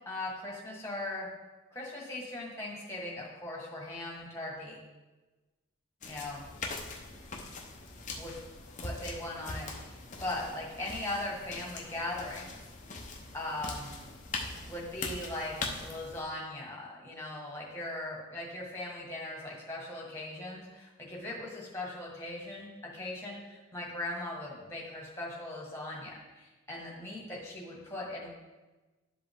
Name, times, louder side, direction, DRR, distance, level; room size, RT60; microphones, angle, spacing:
voice 1, 0.1-1.3 1.7-4.8 6.1-6.4 8.2-8.4 8.8-12.7 13.3-13.9 14.7-28.3, left 1 dB, 10° left, -3 dB, 1.7 m, -39 dB
sound 1, 6.0-16.2, left 3 dB, 35° left, 0.8 m, -42 dB
11.5 x 5.0 x 3.7 m, 1.2 s
head